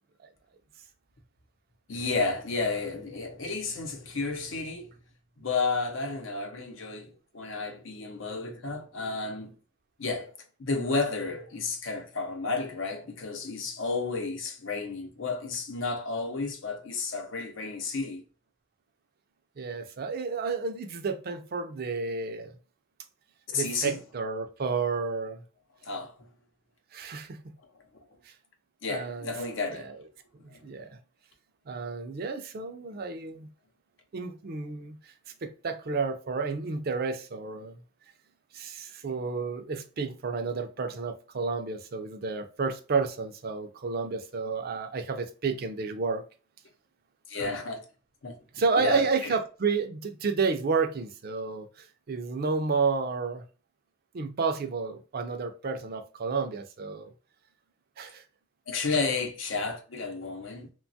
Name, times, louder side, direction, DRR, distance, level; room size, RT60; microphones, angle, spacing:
voice 1, 1.9-4.9 5.4-9.5 10.0-10.3 10.6-18.2 23.5-24.0 25.8-26.1 28.8-30.0 30.5-30.6 47.3-47.8 48.2-48.4 48.8-49.3 58.7-60.7, left 4 dB, 80° left, 0.7 m, -32 dB
voice 2, 19.6-22.5 23.5-25.4 26.9-27.4 28.3-28.4 28.9-29.3 29.7-30.0 30.4-31.0 31.7-33.5 34.1-35.1 35.4-37.7 38.5-46.2 48.5-53.4 54.1-57.1 58.0-58.2, right 4 dB, 50° right, 0.4 m, -31 dB
3.0 x 2.2 x 2.6 m
head